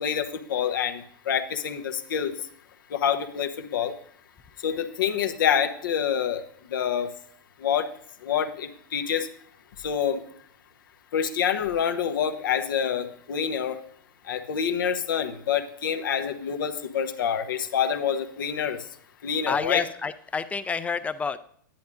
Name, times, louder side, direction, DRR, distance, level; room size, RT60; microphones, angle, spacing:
voice 1, 0.0-2.3 2.9-3.9 4.6-6.4 6.7-7.1 7.6-7.9 8.2-9.3 9.8-10.2 11.1-13.8 14.3-18.8 19.2-19.8, left 8 dB, 75° left, 7 dB, 1.0 m, -27 dB
voice 2, 19.5-21.4, left 5 dB, 10° left, 13 dB, 0.5 m, -29 dB
10.5 x 10.5 x 2.6 m, 0.64 s
hypercardioid pair, 120°, 11 cm